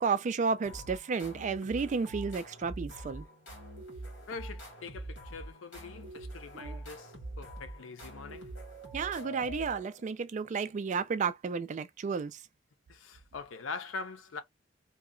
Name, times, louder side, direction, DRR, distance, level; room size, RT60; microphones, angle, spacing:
voice 1, 0.0-3.3 6.5-6.8 8.9-12.4, right 5 dB, 40° right, 0.3 m, -32 dB
sound 1, 0.6-10.1, right 1 dB, 70° left, 1.5 m, -44 dB
voice 2, 4.3-8.5 12.9-14.4, left 4 dB, 85° left, 0.5 m, -43 dB
2.8 x 2.2 x 2.5 m
head